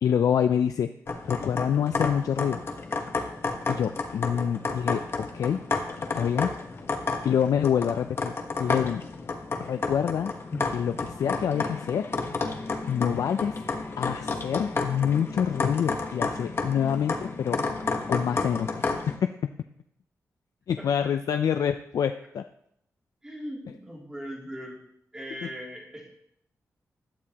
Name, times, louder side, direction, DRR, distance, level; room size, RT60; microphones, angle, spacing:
voice 1, 0.0-0.9 1.3-2.6 3.7-5.6 6.0-6.5 7.2-8.3 8.6-9.0 9.6-10.3 10.7-12.1 12.9-13.6 14.0-17.6 18.1-19.5 20.7-22.4, left 8 dB, 85° left, 8 dB, 0.4 m, -26 dB
sound 1, 1.1-19.2, left 3 dB, 45° left, 1.2 m, -31 dB
voice 2, 23.2-24.8 25.1-26.1, equal, 10° right, -2 dB, 2.8 m, -39 dB
16.0 x 11.0 x 2.9 m, 0.73 s
wide cardioid pair, 150°, 6 cm